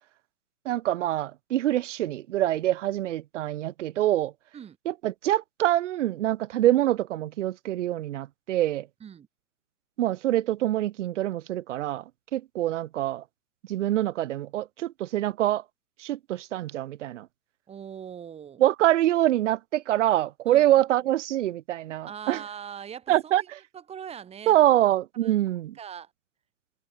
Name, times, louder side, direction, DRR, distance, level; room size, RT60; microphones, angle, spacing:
voice 1, 0.6-4.3 4.9-8.9 10.0-12.0 12.3-13.2 13.7-15.6 16.0-17.3 18.6-22.4 23.1-23.6 24.5-25.8, right 13 dB, 55° right, 0.7 m, -25 dB
voice 2, 17.7-18.6 20.5-20.7 22.0-23.5 23.7-24.6 25.2-25.4 25.8-26.1, right 8 dB, 15° right, 4.3 m, -41 dB
hypercardioid pair, 150°, 45 cm